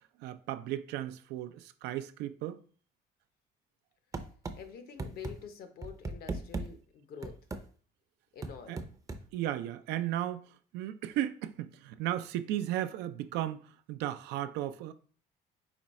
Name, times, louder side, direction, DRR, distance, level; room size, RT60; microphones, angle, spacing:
voice 1, 0.2-2.6 8.7-8.8 9.3-10.5 10.7-14.9, right 12 dB, 85° right, 0.4 m, -35 dB
sound 1, 4.1-4.6 5.0-5.3 5.8-6.7 7.2-7.6 8.4-9.2, right 3 dB, 20° right, 0.5 m, -36 dB
voice 2, 4.5-7.4 8.3-8.8, left 7 dB, 65° left, 0.8 m, -47 dB
5.0 x 2.3 x 4.1 m
cardioid pair, 110°, 17 cm